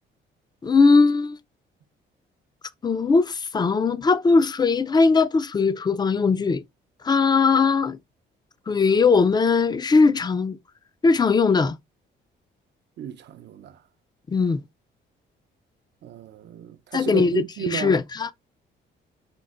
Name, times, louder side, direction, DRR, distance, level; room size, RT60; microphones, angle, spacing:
voice 1, 0.6-1.4 2.8-6.6 7.0-8.0 8.7-10.6 11.0-11.8 14.3-14.6 16.9-18.3, left 4 dB, 20° left, 0.4 m, -19 dB
voice 2, 13.0-13.8 16.0-18.0, right 8 dB, 60° right, 0.5 m, -33 dB
5.2 x 2.0 x 3.5 m
cardioid pair, 90°, 20 cm